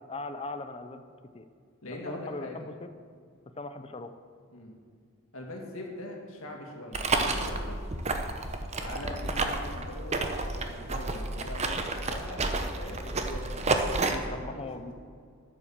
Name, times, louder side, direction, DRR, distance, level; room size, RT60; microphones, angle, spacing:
voice 1, 0.1-1.0 1.3-1.5 1.9-2.9 3.6-4.2 14.3-14.9, left 2 dB, 25° left, 9 dB, 0.5 m, -39 dB
voice 2, 1.8-2.7 4.5-4.7 5.3-7.8 8.8-13.6 14.0-14.9, left 1 dB, 70° left, 0 dB, 2.3 m, -41 dB
sound 1, 6.9-14.2, right 3 dB, 30° right, 0.8 m, -30 dB
9.8 x 9.1 x 7.3 m, 2.2 s
head